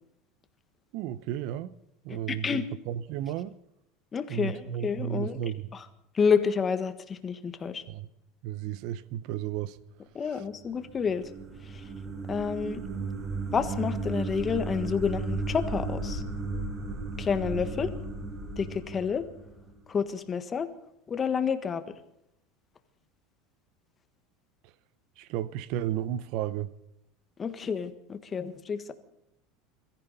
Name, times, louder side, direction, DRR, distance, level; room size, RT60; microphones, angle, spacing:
voice 1, 0.9-1.7 2.0-3.5 4.3-5.7 7.9-8.1 8.4-9.8 10.2-10.4 25.2-26.7, right 11 dB, 60° right, 0.8 m, -33 dB
voice 2, 2.1-2.6 4.1-5.4 6.1-7.8 10.1-11.2 12.3-12.8 13.5-16.2 17.2-17.9 18.6-19.3 19.9-20.7 21.1-21.8 27.4-28.9, left 6 dB, 25° left, 1.5 m, -29 dB
sound 1, 10.6-19.8, right 3 dB, 30° right, 6.1 m, -35 dB
23.0 x 14.5 x 4.2 m
supercardioid pair, 140°, 0 cm